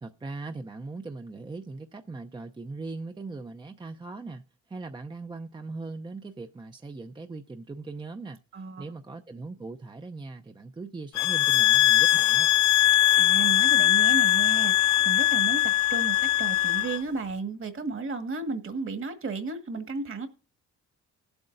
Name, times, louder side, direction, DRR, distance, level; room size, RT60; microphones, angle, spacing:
voice 1, 0.0-8.4 8.8-12.5, right 3 dB, 15° right, 0.6 m, -40 dB
voice 2, 8.5-8.8 13.2-20.3, right 4 dB, 45° right, 1.7 m, -33 dB
sound 1, 11.2-17.0, left 14 dB, 70° left, 0.4 m, -21 dB
18.0 x 8.0 x 2.5 m
cardioid pair, 90°, 30 cm